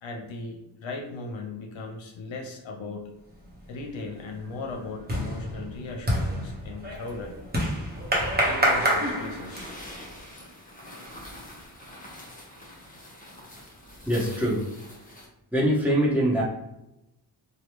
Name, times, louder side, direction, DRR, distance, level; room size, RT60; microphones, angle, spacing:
voice 1, 0.0-3.1 3.7-7.4 8.4-9.7 12.9-13.0, left 3 dB, 75° left, 2 dB, 0.7 m, -37 dB
sound 1, 3.5-3.8 4.2-10.0, equal, 20° right, 1.0 m, -27 dB
sound 2, 6.9-15.3, left 1 dB, 15° left, 1.0 m, -46 dB
voice 2, 14.0-14.6 15.5-16.4, equal, 5° right, -6 dB, 1.2 m, -23 dB
3.2 x 2.3 x 3.0 m, 0.91 s
cardioid pair, 65°, 46 cm